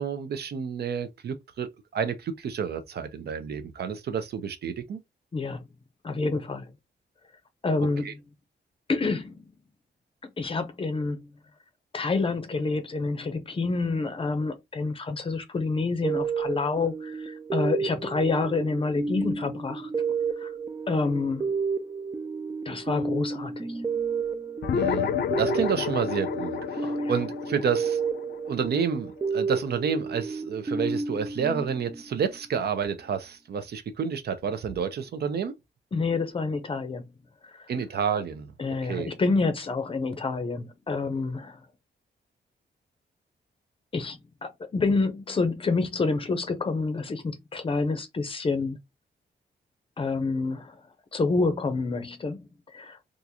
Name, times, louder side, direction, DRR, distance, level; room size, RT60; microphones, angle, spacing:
voice 1, 0.0-5.0 8.0-8.1 24.7-28.0 28.5-35.5 37.7-38.5 38.9-39.1, right 7 dB, 65° right, 0.6 m, -30 dB
voice 2, 5.3-5.6 6.0-6.7 7.6-8.2 8.9-9.6 10.4-11.3 11.9-19.9 20.4-20.5 20.9-21.5 22.7-23.8 26.8-27.0 35.9-37.1 37.4-37.7 38.6-41.6 43.9-48.8 50.0-50.8 51.1-53.0, left 3 dB, 30° left, 0.6 m, -28 dB
sound 1, 16.0-32.4, right 5 dB, 20° right, 0.3 m, -31 dB
sound 2, 24.6-29.4, left 7 dB, 70° left, 0.5 m, -30 dB
3.6 x 2.5 x 2.8 m
wide cardioid pair, 160°, 18 cm